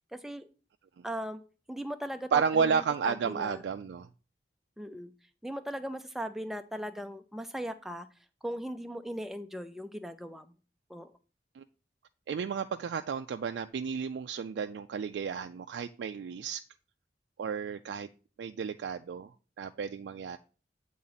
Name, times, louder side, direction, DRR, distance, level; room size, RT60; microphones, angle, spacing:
voice 1, 0.1-0.5 1.0-1.4 1.7-3.6 4.8-5.1 5.4-8.1 8.4-10.6 10.9-11.1, equal, ahead, 0.4 m, -38 dB
voice 2, 2.3-4.1 11.5-11.6 12.3-16.6 17.4-18.1 18.4-19.3 19.6-20.4, right 6 dB, 75° right, 0.3 m, -32 dB
8.5 x 3.8 x 4.0 m
head